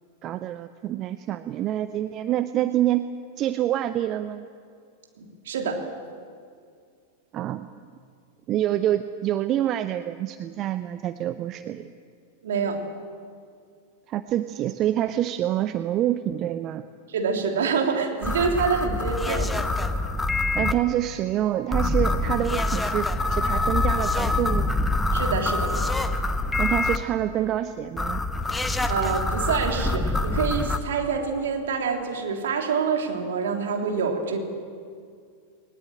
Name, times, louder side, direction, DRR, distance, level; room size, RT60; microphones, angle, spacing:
voice 1, 0.2-3.1 3.4-4.5 7.3-7.7 8.5-11.9 14.1-16.8 20.5-24.7 26.6-28.2, right 12 dB, 35° right, 12 dB, 0.7 m, -26 dB
voice 2, 5.2-5.8 12.4-12.8 17.1-19.6 25.1-25.7 28.9-34.4, right 5 dB, 60° right, 3 dB, 3.2 m, -26 dB
sound 1, 18.2-20.7 21.7-27.0 28.0-30.8, left 2 dB, 10° left, 1.2 m, -25 dB
20.0 x 19.5 x 8.9 m, 2.2 s
figure-of-eight pair, 90°, 0 cm